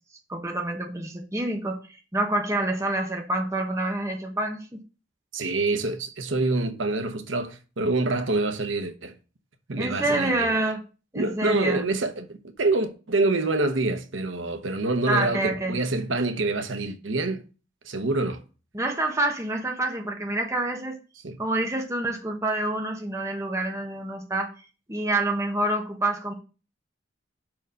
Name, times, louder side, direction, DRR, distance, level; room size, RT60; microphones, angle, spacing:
voice 1, 0.3-4.8 9.8-10.8 11.1-11.8 15.1-15.7 18.7-21.0 21.4-24.5 24.9-26.3, right 2 dB, 15° right, 1.0 m, -27 dB
voice 2, 5.3-9.2 9.7-10.5 11.1-17.4 17.8-18.4 21.2-21.4, right 2 dB, 80° right, 1.0 m, -26 dB
5.4 x 4.8 x 6.3 m
head